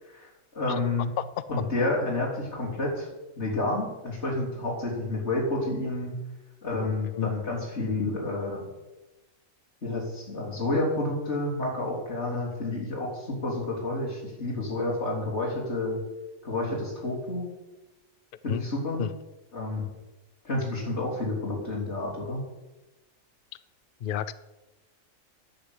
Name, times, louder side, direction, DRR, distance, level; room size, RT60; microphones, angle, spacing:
voice 1, 0.5-1.1 1.5-3.1 3.4-6.2 6.6-8.6 9.8-16.0 16.4-17.5 18.4-19.0 19.5-19.9 20.4-22.4, left 2 dB, 50° left, -3 dB, 3.9 m, -29 dB
voice 2, 24.0-24.3, left 10 dB, 70° left, 16 dB, 0.5 m, -29 dB
10.0 x 8.2 x 8.1 m, 1.1 s
omnidirectional pair, 1.5 m